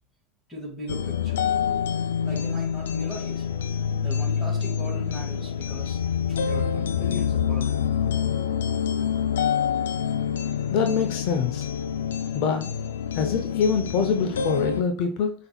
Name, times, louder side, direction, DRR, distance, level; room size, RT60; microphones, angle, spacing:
voice 1, 0.5-1.4 2.2-3.4 4.0-6.0 6.3-7.7, equal, 5° left, -6 dB, 2.4 m, -38 dB
sound 1, 0.9-14.8, left 7 dB, 90° left, 0.3 m, -27 dB
voice 2, 10.7-11.7 12.3-12.7 13.1-15.3, left 6 dB, 60° left, 5 dB, 0.7 m, -24 dB
5.7 x 3.7 x 2.3 m, 0.41 s
hypercardioid pair, 100°, 0 cm